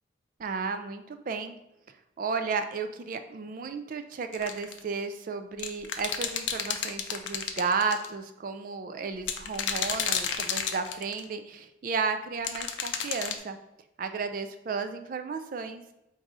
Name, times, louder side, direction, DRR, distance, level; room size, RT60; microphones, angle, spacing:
voice 1, 0.4-1.6 2.2-13.6 14.0-15.8, right 5 dB, 45° right, 8 dB, 0.4 m, -33 dB
sound 1, 4.3-4.8 5.6-8.1 9.2-11.2 12.4-13.4, left 8 dB, 80° left, 0.4 m, -31 dB
3.8 x 2.7 x 4.7 m, 0.90 s
head